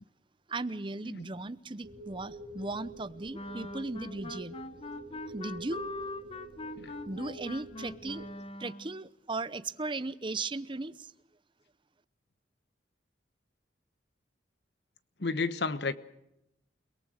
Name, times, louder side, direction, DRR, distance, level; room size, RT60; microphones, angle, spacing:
voice 1, 0.5-4.6 5.3-5.8 7.0-8.3 8.6-11.1, right 3 dB, 25° right, 15 dB, 0.8 m, -37 dB
sound 1, 1.8-8.3, right 1 dB, 65° right, 6.6 m, -47 dB
sound 2, 3.3-9.0, left 2 dB, 30° left, 1.2 m, -42 dB
voice 2, 15.2-16.0, left 4 dB, 65° left, 14 dB, 1.2 m, -32 dB
30.0 x 18.0 x 6.4 m, 0.84 s
head